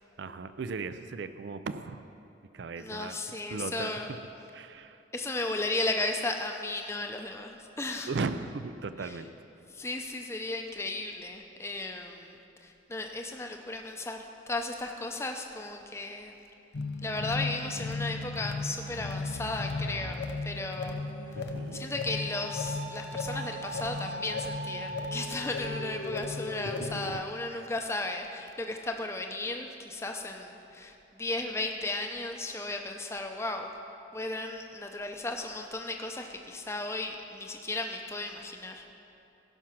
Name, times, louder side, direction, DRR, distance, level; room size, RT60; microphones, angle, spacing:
voice 1, 0.2-2.0 2.5-3.2 3.5-4.1 4.5-5.0 8.1-9.3 21.3-21.9 27.0-27.2 27.5-27.7, right 4 dB, 70° right, 11 dB, 0.4 m, -37 dB
voice 2, 2.8-4.1 5.1-8.1 9.7-12.3 12.6-16.4 17.0-21.0 21.7-33.7 34.1-38.8, left 2 dB, 15° left, 3 dB, 0.6 m, -35 dB
sound 1, 16.7-27.1, left 3 dB, 65° left, 0.7 m, -36 dB
Wind instrument woodwind instrument, 20.8-26.1, right 1 dB, 45° right, 1.3 m, -42 dB
15.5 x 5.9 x 5.9 m, 2.8 s
head